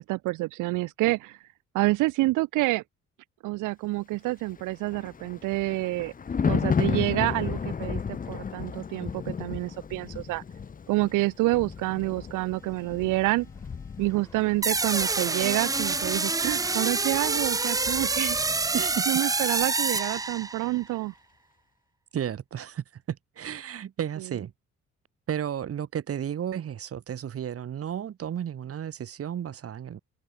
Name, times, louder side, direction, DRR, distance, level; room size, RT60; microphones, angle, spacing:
voice 1, 0.0-1.4 1.7-2.8 3.4-6.1 6.5-10.4 10.9-13.5 14.0-18.4 18.8-21.1, right 20 dB, 90° right, 0.6 m, -28 dB
Thunder, 4.5-19.1 19.4-19.7, left 6 dB, 30° left, 0.8 m, -34 dB
sound 1, 12.5-19.0, left 1 dB, 10° left, 5.4 m, -53 dB
sound 2, 14.6-20.8, right 3 dB, 10° right, 0.4 m, -27 dB
voice 2, 18.7-19.2 22.1-24.5 25.3-30.0, right 9 dB, 50° right, 1.2 m, -33 dB
cardioid pair, 90°, 30 cm